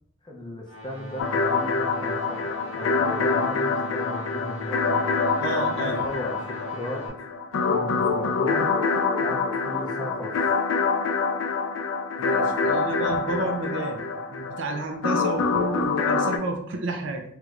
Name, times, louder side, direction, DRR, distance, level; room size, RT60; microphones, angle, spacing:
voice 1, 0.2-5.1 5.8-7.1 7.7-8.7 9.2-10.4, left 1 dB, 20° left, -1 dB, 0.5 m, -35 dB
sound 1, 0.6-7.1, right 1 dB, 30° right, 0.9 m, -40 dB
sound 2, 1.2-16.4, left 4 dB, 80° left, 0.3 m, -25 dB
voice 2, 5.4-6.0 12.2-17.2, right 2 dB, 65° right, 4 dB, 0.4 m, -31 dB
3.1 x 3.0 x 2.4 m, 0.73 s
head